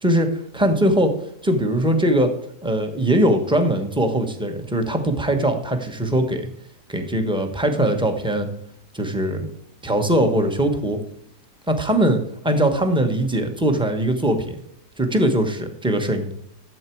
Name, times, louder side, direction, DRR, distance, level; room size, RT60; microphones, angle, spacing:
voice 1, 0.0-1.1 1.4-2.3 2.6-6.5 6.9-8.5 8.9-9.5 9.8-11.0 11.7-14.6 15.0-16.3, right 1 dB, 5° right, 5 dB, 1.1 m, -21 dB
12.5 x 7.7 x 4.7 m, 0.75 s
omnidirectional pair, 1.7 m